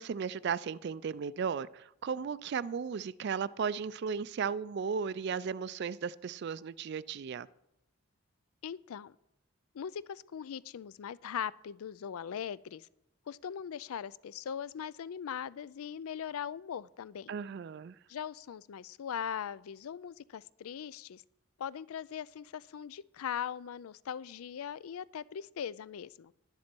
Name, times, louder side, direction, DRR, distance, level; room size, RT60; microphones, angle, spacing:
voice 1, 0.0-7.5 17.3-18.0, right 6 dB, 50° right, 0.3 m, -35 dB
voice 2, 8.6-9.2 9.7-12.9 13.3-17.3 18.1-21.2 21.6-26.3, left 8 dB, 80° left, 0.4 m, -40 dB
10.5 x 10.5 x 4.5 m
head